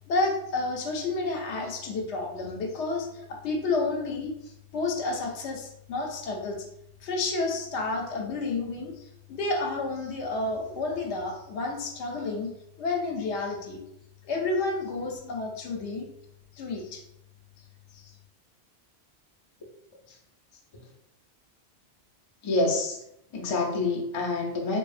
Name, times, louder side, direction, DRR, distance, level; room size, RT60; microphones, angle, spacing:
voice 1, 0.1-6.7 7.0-12.5 12.8-13.8 14.2-16.1 16.6-17.0 17.9-18.1, left 3 dB, 85° left, 1 dB, 0.9 m, -30 dB
voice 2, 22.4-23.0 23.3-24.8, left 2 dB, 40° left, -2 dB, 0.4 m, -27 dB
2.7 x 2.2 x 2.4 m, 0.78 s
omnidirectional pair, 1.1 m